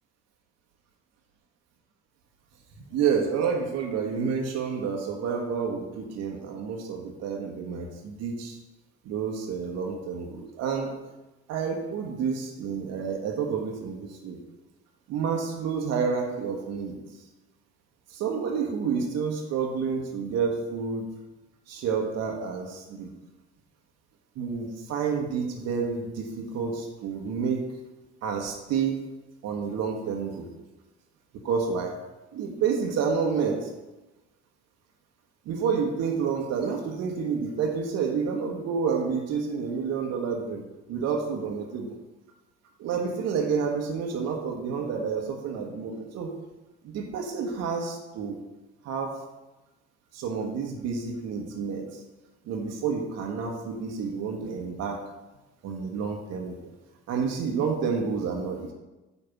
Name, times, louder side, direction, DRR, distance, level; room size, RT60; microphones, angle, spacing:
voice 1, 2.8-8.6 9.0-10.9 11.5-14.4 15.1-16.9 18.1-21.0 21.7-23.1 24.3-27.6 28.2-29.0 29.4-30.5 31.3-32.0 32.3-33.7 35.4-40.6 40.9-41.9 42.8-46.3 46.8-48.4 48.8-49.2 50.1-52.0 52.4-55.0 55.6-56.7 57.1-58.7, right 6 dB, 50° right, 1 dB, 1.2 m, -29 dB
9.2 x 3.3 x 6.0 m, 1.1 s
figure-of-eight pair, 55°, 33 cm